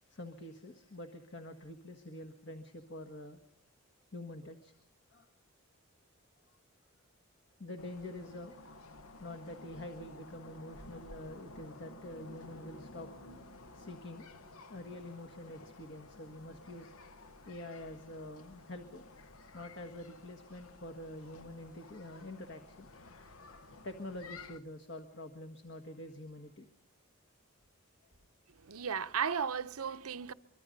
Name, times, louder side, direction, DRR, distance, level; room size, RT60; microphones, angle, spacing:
voice 1, 0.1-3.4 4.1-4.7 5.1-5.3 7.6-8.8 9.2-13.4 13.7-14.4 14.7-16.9 17.5-19.1 19.5-22.9 23.8-26.7, left 1 dB, 55° left, 1.6 m, -46 dB
sound 1, 7.8-24.6, left 2 dB, 85° left, 1.2 m, -53 dB
voice 2, 28.6-30.3, right 7 dB, 90° right, 0.8 m, -35 dB
24.5 x 23.5 x 5.4 m
head